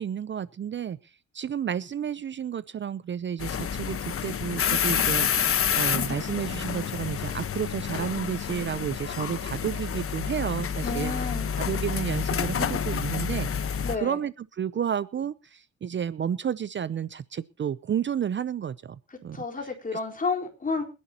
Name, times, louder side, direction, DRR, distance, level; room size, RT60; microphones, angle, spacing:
voice 1, 0.0-11.1 11.5-19.4 19.9-20.0, right 8 dB, 40° right, 17 dB, 0.6 m, -31 dB
sound 1, 3.4-14.0, left 8 dB, 45° left, 1.2 m, -28 dB
voice 2, 10.8-11.5 13.8-14.2 19.3-20.8, left 4 dB, 25° left, 3 dB, 4.4 m, -30 dB
25.5 x 11.0 x 2.9 m, 0.31 s
cardioid pair, 90°, 30 cm